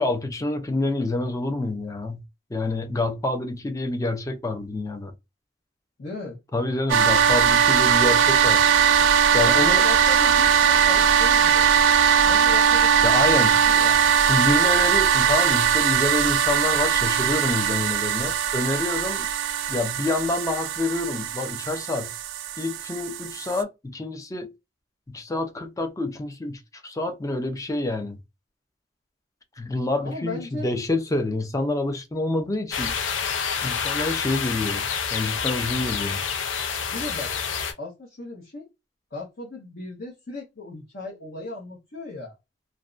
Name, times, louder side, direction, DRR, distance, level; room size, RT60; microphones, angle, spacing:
voice 1, 0.0-2.2 2.5-5.1 6.5-8.6 9.3-9.8 13.0-13.5 14.2-19.3 19.7-22.1 22.6-24.5 25.1-28.2 29.6-33.0 33.6-34.9 35.1-36.2, left 2 dB, 20° left, 0.5 m, -27 dB
voice 2, 6.0-6.4 9.4-11.7 12.2-13.0 13.5-14.1 30.0-30.7 36.9-37.3 37.8-38.7 39.1-42.4, left 3 dB, 60° left, 0.8 m, -36 dB
sound 1, 6.9-23.6, right 8 dB, 75° right, 0.3 m, -20 dB
sound 2, 32.7-37.7, left 6 dB, 80° left, 0.5 m, -28 dB
2.5 x 2.1 x 2.4 m
head